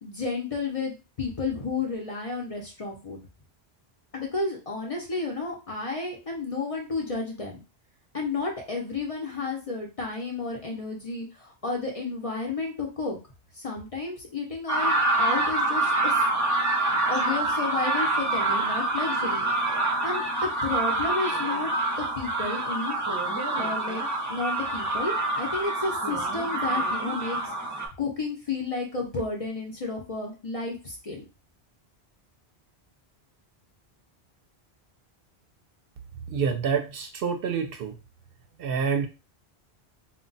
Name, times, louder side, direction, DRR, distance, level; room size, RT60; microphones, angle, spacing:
voice 1, 0.0-3.2 4.1-7.6 8.1-13.2 13.5-16.2 16.9-19.4 20.0-21.7 22.0-23.0 23.6-24.0 24.3-31.2, left 3 dB, 40° left, 0 dB, 0.6 m, -32 dB
sound 1, 14.7-27.9, right 2 dB, 20° right, 0.5 m, -26 dB
voice 2, 36.3-37.9 38.6-39.1, right 6 dB, 65° right, 5 dB, 0.7 m, -27 dB
2.2 x 2.2 x 3.8 m, 0.30 s
omnidirectional pair, 1.1 m